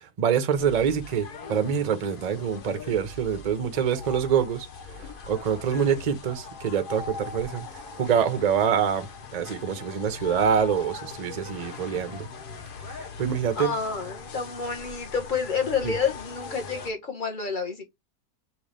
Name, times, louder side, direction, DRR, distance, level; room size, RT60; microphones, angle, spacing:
voice 1, 0.2-4.7 5.0-7.7 8.0-12.3 12.9-13.8 15.8-15.9, right 7 dB, 50° right, 0.5 m, -25 dB
sound 1, 0.5-16.9, left 4 dB, 55° left, 0.6 m, -41 dB
voice 2, 13.5-17.9, left 5 dB, 30° left, 1.4 m, -29 dB
5.4 x 3.0 x 3.2 m
omnidirectional pair, 1.7 m